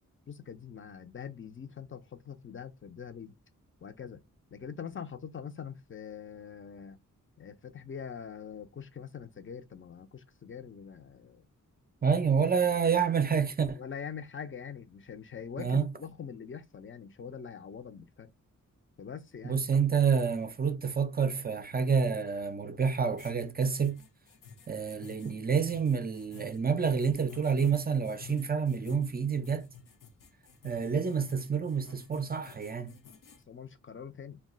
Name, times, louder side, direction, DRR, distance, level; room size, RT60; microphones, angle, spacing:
voice 1, 0.3-3.4 3.8-4.2 4.5-7.0 7.4-11.5 13.8-18.3 19.0-19.6 33.5-34.4, left 7 dB, 40° left, 0.5 m, -43 dB
voice 2, 12.0-13.8 15.6-15.9 19.4-24.0 24.7-29.7 30.6-33.0, right 6 dB, 30° right, 0.4 m, -28 dB
sound 1, 23.2-33.4, left 6 dB, 80° left, 0.6 m, -51 dB
2.3 x 2.3 x 3.7 m
cardioid pair, 70°, 32 cm